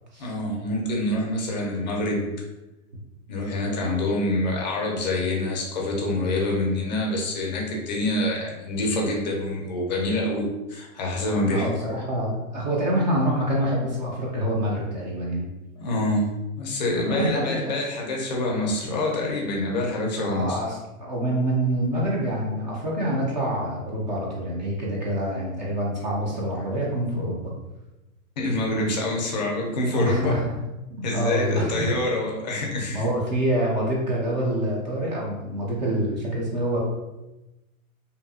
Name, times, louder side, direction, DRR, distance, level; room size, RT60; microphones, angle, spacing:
voice 1, 0.2-2.3 3.3-11.6 15.8-16.2 16.6-20.6 28.4-30.4 31.0-33.0, left 1 dB, 35° left, -1 dB, 0.4 m, -26 dB
voice 2, 11.5-15.5 17.0-17.7 20.2-27.4 29.9-30.6 30.9-31.9 32.9-36.8, right 1 dB, 35° right, -3 dB, 0.4 m, -26 dB
2.7 x 2.5 x 2.3 m, 1.0 s
hypercardioid pair, 155°, 43 cm